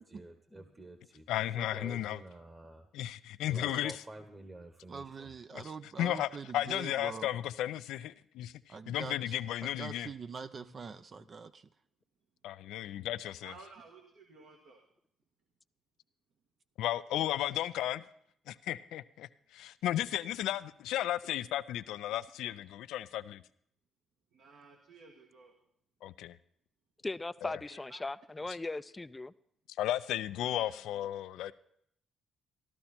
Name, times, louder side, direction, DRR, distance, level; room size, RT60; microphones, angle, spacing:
voice 1, 0.0-1.3 1.6-2.9 3.5-5.3, right 2 dB, 25° right, 6 dB, 1.2 m, -49 dB
voice 2, 1.3-2.2 2.9-4.0 5.5-5.6 6.0-8.5 8.9-10.1 12.4-13.5 16.8-18.0 18.5-23.4 26.0-26.4 27.4-27.5 29.8-31.5, left 13 dB, 85° left, 14 dB, 0.4 m, -34 dB
voice 3, 4.9-7.3 8.7-9.3 9.8-11.7, right 5 dB, 45° right, 10 dB, 0.5 m, -44 dB
voice 4, 13.4-14.8 24.3-25.5 27.7-28.0 30.4-30.8, right 4 dB, 80° right, 1 dB, 1.6 m, -55 dB
voice 5, 27.0-29.3, left 2 dB, 20° left, 15 dB, 0.4 m, -38 dB
14.5 x 12.0 x 4.3 m, 0.70 s
cardioid pair, 90°, 0 cm